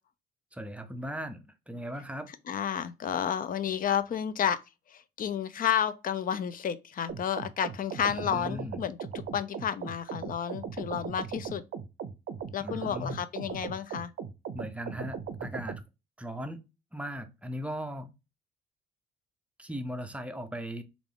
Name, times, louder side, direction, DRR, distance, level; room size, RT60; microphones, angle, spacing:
voice 1, 0.5-2.3 8.1-8.8 12.6-13.2 14.5-15.8 16.2-16.6 16.9-18.1 19.6-20.8, equal, 5° right, 0.5 m, -38 dB
voice 2, 2.3-4.6 4.9-11.6 12.5-14.1, left 9 dB, 45° left, 0.5 m, -31 dB
sound 1, 7.1-15.8, right 7 dB, 55° right, 0.5 m, -38 dB
3.3 x 2.5 x 3.5 m
cardioid pair, 90°, 20 cm